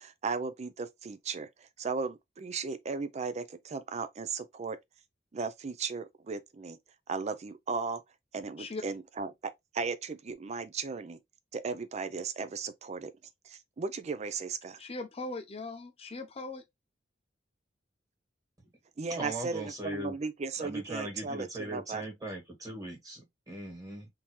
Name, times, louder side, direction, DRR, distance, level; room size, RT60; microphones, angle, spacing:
voice 1, 0.0-4.8 5.3-6.8 7.1-8.0 8.3-11.2 11.5-13.1 13.4-14.8 19.0-22.0, right 4 dB, 40° right, 0.5 m, -36 dB
voice 2, 14.8-16.6, left 2 dB, 35° left, 0.6 m, -39 dB
voice 3, 19.1-20.1 20.6-24.1, right 1 dB, 20° right, 1.7 m, -39 dB
3.7 x 2.7 x 3.0 m
head